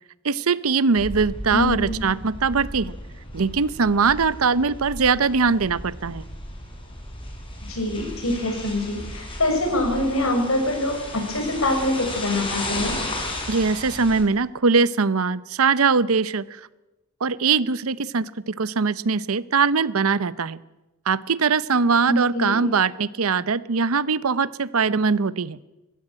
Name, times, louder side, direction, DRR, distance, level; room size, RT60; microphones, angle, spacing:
voice 1, 0.2-2.9 3.3-6.2 13.5-16.5 17.2-20.6 21.1-25.6, right 5 dB, 80° right, 18 dB, 0.7 m, -21 dB
sound 1, 0.9-14.2, left 1 dB, 25° left, 5.2 m, -34 dB
voice 2, 1.5-2.0 7.7-12.9 22.1-22.6, left 1 dB, 75° left, 3 dB, 6.4 m, -24 dB
20.0 x 15.5 x 8.9 m, 1.1 s
head